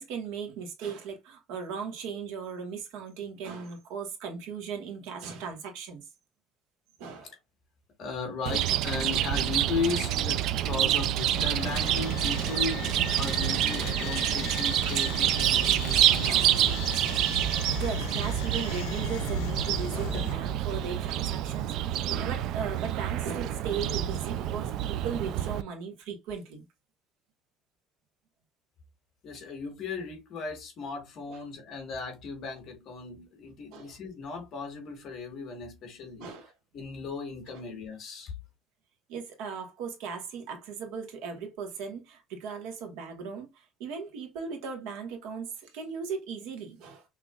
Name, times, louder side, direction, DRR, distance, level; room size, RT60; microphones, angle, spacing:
voice 1, 0.0-6.0 7.0-7.3 8.4-8.6 10.0-10.1 10.5-10.6 16.2-16.5 17.5-26.6 31.3-31.4 33.7-33.9 36.2-36.5 37.5-37.6 39.1-47.0, right 6 dB, 80° right, 1.4 m, -37 dB
voice 2, 8.0-16.8 29.2-36.4 36.7-38.3, left 4 dB, 40° left, 1.5 m, -36 dB
Chirp tweet, 8.5-25.6, right 12 dB, 55° right, 0.3 m, -28 dB
sound 1, 11.3-20.3, left 7 dB, 85° left, 0.8 m, -37 dB
5.7 x 2.9 x 2.4 m
cardioid pair, 175°, 0 cm